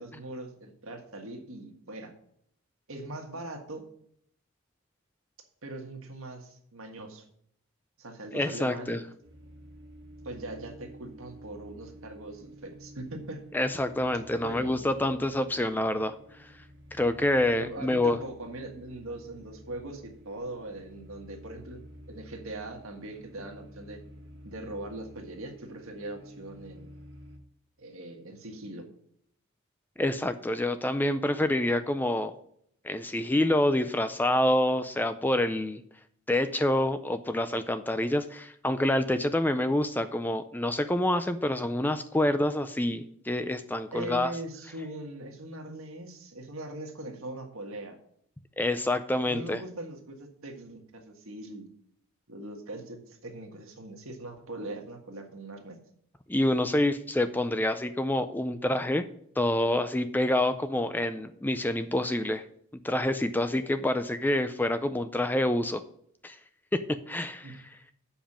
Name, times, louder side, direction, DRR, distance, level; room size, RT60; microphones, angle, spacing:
voice 1, 0.0-2.1 2.9-3.9 5.6-7.2 8.0-8.9 10.2-13.4 14.4-15.2 17.5-24.0 24.4-26.9 27.8-28.9 43.9-48.0 49.3-51.7 52.3-55.8 67.4-67.5, right 2 dB, 80° right, 3 dB, 1.6 m, -41 dB
voice 2, 8.3-9.0 13.5-16.1 16.4-16.5 16.9-18.2 30.0-32.4 32.8-35.8 36.3-44.3 48.6-49.6 56.3-59.1 59.4-62.4 62.8-65.8 66.2-66.4 66.7-67.5, left 1 dB, 10° left, 11 dB, 0.3 m, -27 dB
sound 1, 9.2-27.4, equal, 55° right, 1.4 m, -50 dB
7.2 x 5.3 x 7.3 m, 0.67 s
head